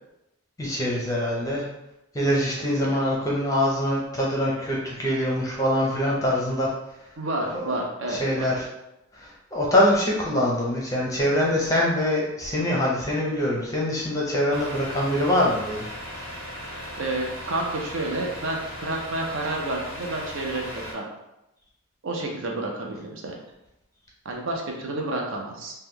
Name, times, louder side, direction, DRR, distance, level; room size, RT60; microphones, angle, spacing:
voice 1, 0.6-1.7 2.1-6.7 7.4-7.8 8.1-8.6 9.1-16.3, left 1 dB, 15° left, -4 dB, 0.6 m, -24 dB
voice 2, 7.2-8.5 17.0-21.1 22.0-23.3 24.2-25.7, right 2 dB, 60° right, 0 dB, 0.6 m, -30 dB
Truck, 14.5-20.9, equal, 90° right, 1.2 m, -37 dB
3.0 x 2.2 x 3.6 m, 0.89 s
head